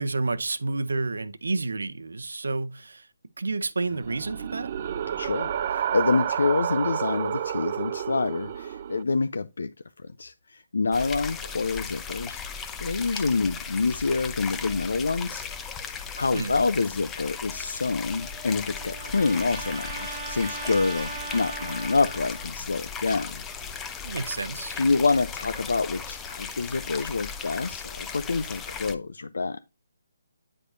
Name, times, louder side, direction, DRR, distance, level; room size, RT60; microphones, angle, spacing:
voice 1, 0.0-3.1 3.4-4.7 16.3-16.5 24.0-24.8, right 3 dB, 75° right, 0.7 m, -30 dB
sound 1, 3.9-9.0, right 9 dB, 40° right, 0.4 m, -30 dB
voice 2, 5.2-9.7 10.0-15.4 15.7-23.4 24.8-29.6, left 4 dB, 70° left, 0.5 m, -27 dB
sound 2, 10.9-28.9, left 6 dB, 10° left, 0.7 m, -37 dB
Trumpet, 17.8-22.6, right 3 dB, 25° right, 1.3 m, -39 dB
9.7 x 4.9 x 2.6 m
figure-of-eight pair, 145°, 0 cm